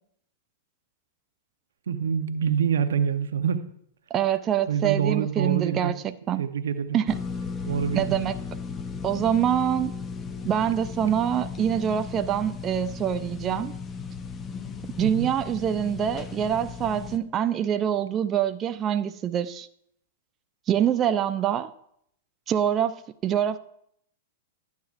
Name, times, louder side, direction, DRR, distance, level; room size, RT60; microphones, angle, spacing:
voice 1, 1.9-3.6 4.7-5.9 6.4-7.0 7.7-8.2 15.0-15.3, right 7 dB, 85° right, 0.8 m, -26 dB
voice 2, 4.1-6.5 6.9-7.2 7.9-8.4 9.0-9.9 10.4-13.8 15.0-19.7 20.7-21.7 22.5-23.6, right 9 dB, 25° right, 0.4 m, -25 dB
sound 1, 7.1-17.2, left 5 dB, 20° left, 0.7 m, -36 dB
12.5 x 9.5 x 2.5 m
hypercardioid pair, 130°, 0 cm